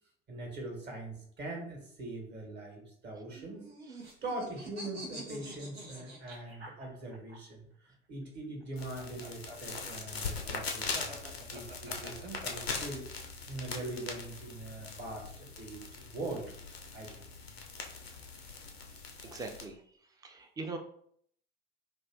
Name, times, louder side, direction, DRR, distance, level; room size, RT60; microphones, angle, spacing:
voice 1, 0.3-3.7 4.2-17.3, right 2 dB, 35° right, 1 dB, 1.1 m, -42 dB
sound 1, 3.3-7.4 8.6-12.8, right 1 dB, 85° right, 0.7 m, -47 dB
sound 2, 8.8-19.7, left 4 dB, 85° left, 0.5 m, -41 dB
voice 2, 19.2-19.8 20.2-20.8, right 3 dB, 15° right, 5 dB, 0.4 m, -41 dB
2.4 x 2.3 x 3.3 m, 0.65 s
figure-of-eight pair, 60°, 30 cm